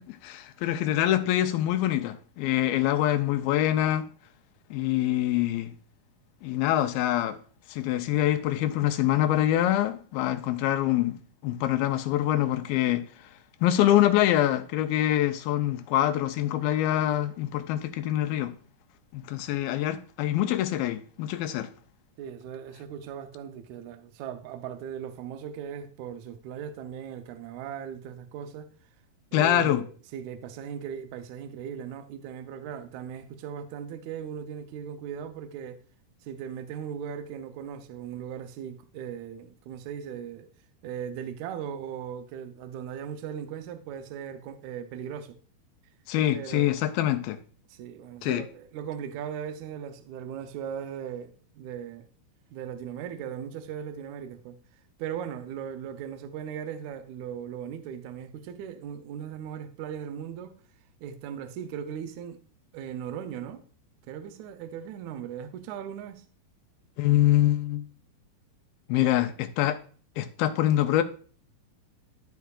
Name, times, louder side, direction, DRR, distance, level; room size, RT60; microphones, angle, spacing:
voice 1, 0.0-4.1 4.7-5.7 6.4-7.4 7.7-11.2 11.4-13.3 13.6-18.5 19.1-21.7 29.3-29.8 46.1-47.4 48.2-48.5 67.0-67.9 68.9-69.8 70.2-71.0, left 13 dB, 90° left, 2.4 m, -25 dB
voice 2, 22.2-28.7 29.3-35.8 36.2-40.5 40.8-45.4 46.3-46.7 47.7-52.1 52.5-54.6 55.0-60.5 61.0-62.4 62.7-63.6 64.1-66.2, right 8 dB, 90° right, 1.6 m, -38 dB
13.0 x 4.6 x 2.4 m
omnidirectional pair, 4.2 m